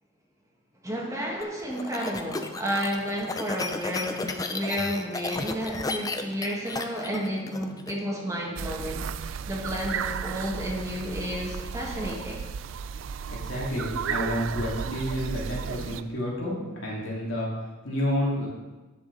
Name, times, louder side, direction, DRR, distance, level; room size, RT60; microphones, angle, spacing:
voice 1, 0.8-9.1 9.4-12.4, equal, 15° right, -2 dB, 1.5 m, -31 dB
sound 1, 1.4-7.9, left 3 dB, 20° left, 0.4 m, -33 dB
sound 2, 8.6-16.0, right 7 dB, 80° right, 0.4 m, -34 dB
voice 2, 13.3-17.5 17.8-18.5, equal, 75° left, -4 dB, 2.6 m, -30 dB
10.5 x 6.3 x 3.9 m, 1.2 s
head